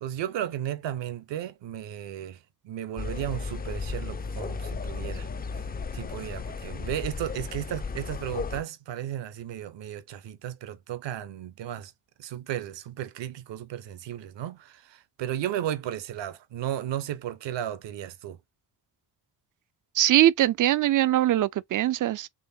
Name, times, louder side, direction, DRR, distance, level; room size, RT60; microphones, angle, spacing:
voice 1, 0.0-5.3 5.5-5.6 5.9-11.9 12.2-18.4, right 11 dB, 60° right, 0.9 m, -34 dB
sound 1, 3.0-8.6, left 4 dB, 20° left, 0.5 m, -34 dB
voice 2, 20.0-22.3, right 13 dB, 40° right, 0.5 m, -22 dB
3.9 x 3.2 x 2.7 m
hypercardioid pair, 40°, 49 cm